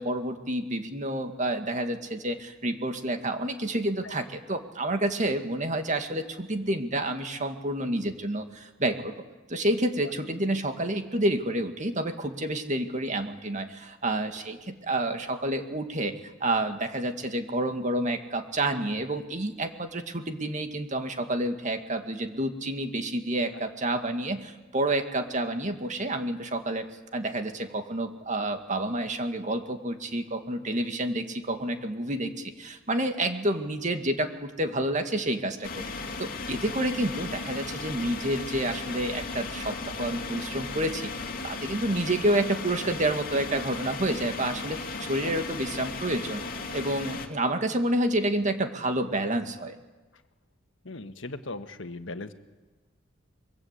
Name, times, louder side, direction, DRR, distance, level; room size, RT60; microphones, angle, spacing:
voice 1, 0.0-9.1 9.5-26.9 27.1-46.4 46.7-49.8, right 1 dB, 40° right, 6 dB, 2.2 m, -29 dB
sound 1, 35.6-47.3, left 3 dB, 50° left, 2.4 m, -36 dB
voice 2, 50.8-52.3, left 2 dB, 75° left, 8 dB, 1.6 m, -38 dB
24.0 x 23.0 x 8.4 m, 1.2 s
head